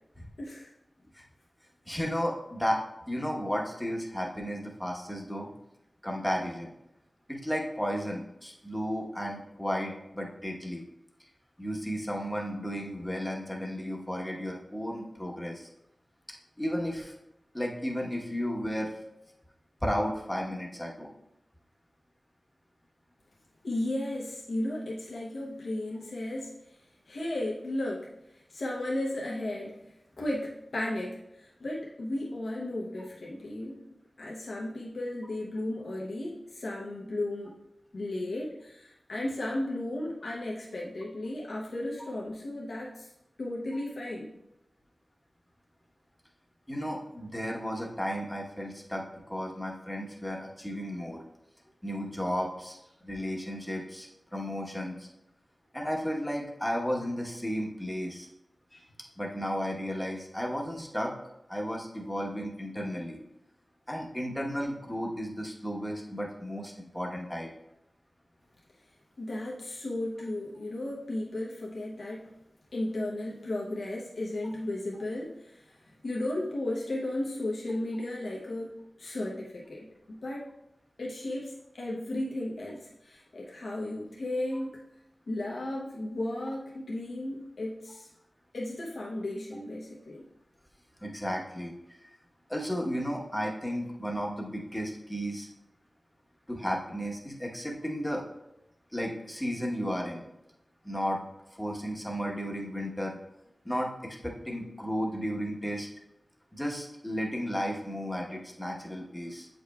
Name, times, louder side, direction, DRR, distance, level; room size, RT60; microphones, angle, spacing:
voice 1, 0.4-0.7 23.6-26.5 27.1-28.1 28.5-29.8 30.2-33.8 34.2-37.5 37.9-43.1 43.4-44.3 69.2-72.3 72.7-75.8 76.0-80.5 81.0-84.8 85.3-88.1 88.5-90.2, left 1 dB, 85° left, -4 dB, 0.9 m, -34 dB
voice 2, 1.8-5.5 6.0-6.7 7.3-10.8 11.6-15.7 16.6-17.1 17.5-18.9 19.8-21.1 46.7-51.2 51.8-55.1 55.7-58.3 58.7-58.8 59.2-61.1 61.5-63.2 63.9-67.5 84.5-84.6 91.0-92.1 92.5-95.5 96.5-98.2 98.9-100.3 100.8-101.2 101.5-103.2 103.6-105.9 106.5-109.5, equal, 10° left, -1 dB, 1.1 m, -33 dB
7.9 x 5.2 x 2.3 m, 0.85 s
wide cardioid pair, 65°, 0 cm